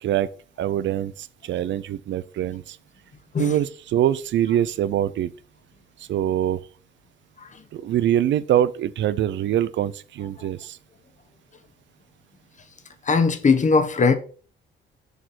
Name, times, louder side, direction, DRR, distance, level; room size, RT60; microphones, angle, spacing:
voice 1, 0.6-2.8 3.4-5.3 6.1-6.6 7.7-10.8, right 11 dB, 70° right, 0.5 m, -24 dB
voice 2, 13.1-14.2, left 4 dB, 40° left, 1.2 m, -19 dB
7.0 x 4.5 x 5.9 m
cardioid pair, 90°, 20 cm